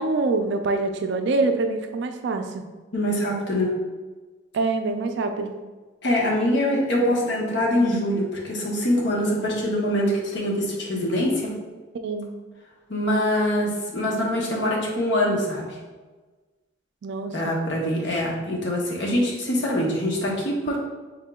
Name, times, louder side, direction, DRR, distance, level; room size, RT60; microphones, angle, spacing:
voice 1, 0.0-2.6 4.5-5.5 12.0-12.3 17.0-17.5, right 3 dB, 60° right, 6 dB, 0.3 m, -25 dB
voice 2, 2.9-3.7 6.0-11.5 12.9-15.7 17.3-20.8, equal, 65° left, -3 dB, 0.9 m, -24 dB
3.6 x 2.9 x 3.5 m, 1.3 s
head